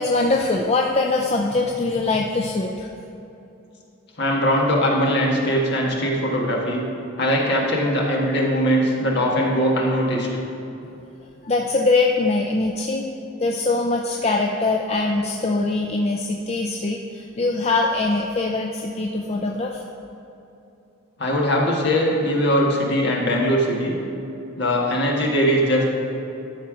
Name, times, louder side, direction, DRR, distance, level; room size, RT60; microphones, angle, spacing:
voice 1, 0.0-2.9 11.4-13.1 13.4-19.8, left 3 dB, 30° left, 1 dB, 0.4 m, -22 dB
voice 2, 4.2-6.8 7.2-10.3 21.2-24.0 24.5-25.8, equal, 55° left, -2 dB, 1.6 m, -21 dB
12.5 x 4.4 x 6.1 m, 2.8 s
head